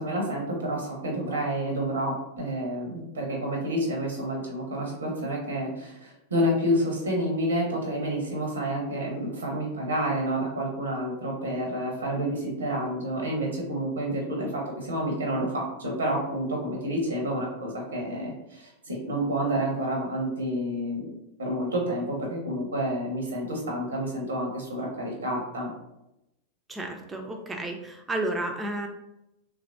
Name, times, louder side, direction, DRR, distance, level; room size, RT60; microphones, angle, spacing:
voice 1, 0.0-21.1 21.4-25.7, equal, 75° right, 0 dB, 0.7 m, -29 dB
voice 2, 26.7-28.9, right 1 dB, 15° right, 3 dB, 0.3 m, -32 dB
3.0 x 2.4 x 2.4 m, 0.89 s
figure-of-eight pair, 90°, 0 cm